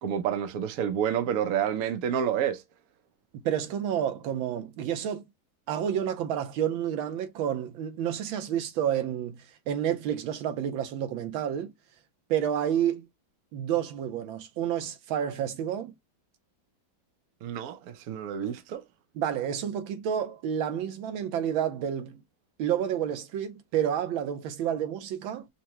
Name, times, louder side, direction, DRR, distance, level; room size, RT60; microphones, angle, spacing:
voice 1, 0.0-2.6 17.4-18.8, right 9 dB, 65° right, 0.9 m, -29 dB
voice 2, 3.4-5.2 5.7-11.7 12.3-13.1 13.5-15.9 19.1-22.2 22.6-25.5, right 9 dB, 85° right, 1.5 m, -29 dB
5.8 x 2.2 x 2.9 m
omnidirectional pair, 2.1 m